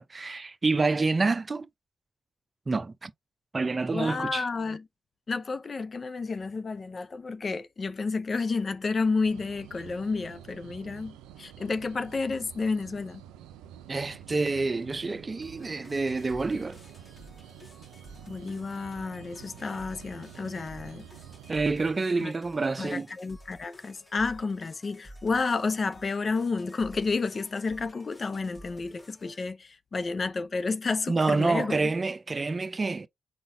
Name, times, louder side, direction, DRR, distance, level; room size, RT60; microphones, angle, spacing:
voice 1, 0.0-1.7 2.7-3.1 3.5-4.4 13.9-16.8 21.5-23.1 31.1-33.1, right 3 dB, 35° right, 0.6 m, -27 dB
voice 2, 3.9-4.8 5.3-13.2 18.3-21.1 22.2-22.3 22.8-31.9, left 4 dB, 45° left, 0.6 m, -31 dB
sound 1, 9.2-22.0, right 10 dB, 85° right, 0.5 m, -49 dB
sound 2, 15.4-29.4, equal, 25° left, 1.7 m, -52 dB
4.4 x 3.9 x 2.6 m
supercardioid pair, 50°, 0 cm